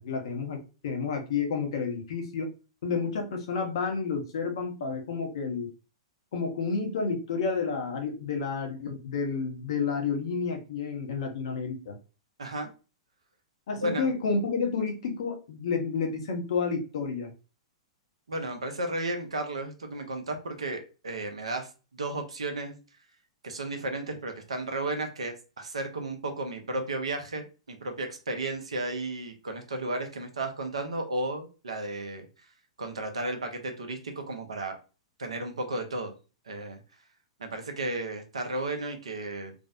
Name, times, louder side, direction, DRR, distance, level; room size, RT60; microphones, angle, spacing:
voice 1, 0.0-2.5 2.8-5.7 6.3-12.0 13.7-17.3, left 5 dB, 60° left, 4 dB, 0.7 m, -30 dB
voice 2, 12.4-12.7 13.8-14.1 18.3-22.7 23.4-32.3 32.8-34.8 35.2-36.1 36.5-36.8 37.4-39.5, right 2 dB, 80° right, 5 dB, 0.6 m, -33 dB
2.5 x 2.0 x 2.4 m, 0.33 s
figure-of-eight pair, 105°, 3 cm